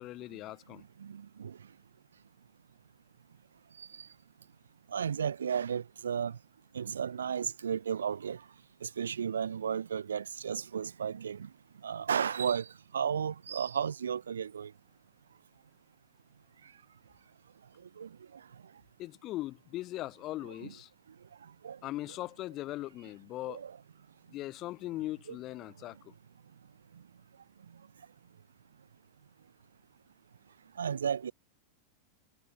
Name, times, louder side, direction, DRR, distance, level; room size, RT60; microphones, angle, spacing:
voice 1, 0.0-0.8 19.0-20.9 21.8-23.6 24.3-26.1, left 16 dB, 35° left, 6.3 m, -40 dB
voice 2, 1.0-1.6 3.8-4.1 4.9-6.4 6.7-8.4 8.8-11.5 11.8-12.7 12.9-14.7 18.0-18.1 20.6-20.7 21.6-21.8 23.5-23.8 25.3-25.4 30.8-31.3, right 7 dB, 70° right, 2.5 m, -33 dB
figure-of-eight pair, 90°, 0 cm